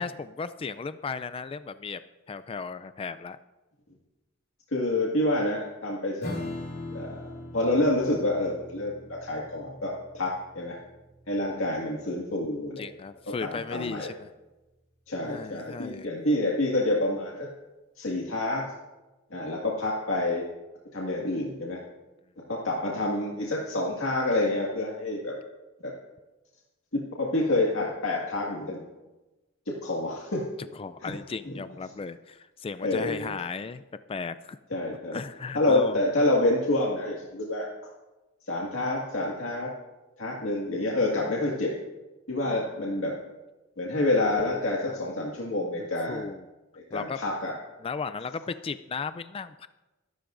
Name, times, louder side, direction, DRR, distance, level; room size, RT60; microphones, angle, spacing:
voice 1, 0.0-2.0 2.3-3.4 12.8-14.3 15.2-16.1 30.8-33.8 34.1-34.6 35.1-36.0 44.9-45.0 46.1-46.4 46.9-47.2 47.8-49.7, left 5 dB, 25° left, 12 dB, 0.3 m, -35 dB
voice 2, 4.7-6.3 6.9-7.2 7.5-10.8 11.3-12.9 13.4-14.1 15.1-17.5 18.0-18.6 19.3-20.5 20.9-21.8 22.5-25.3 25.8-25.9 26.9-28.8 29.7-30.4 31.0-31.1 31.5-31.6 32.8-33.3 34.7-35.2 35.5-37.7 38.5-39.7 40.2-41.7 42.3-43.1 43.8-46.3 46.9-47.5, left 2 dB, 80° left, -3 dB, 1.9 m, -28 dB
Strum, 6.2-13.1, left 1 dB, 50° left, 2.8 m, -41 dB
23.0 x 11.5 x 2.6 m, 1.1 s
head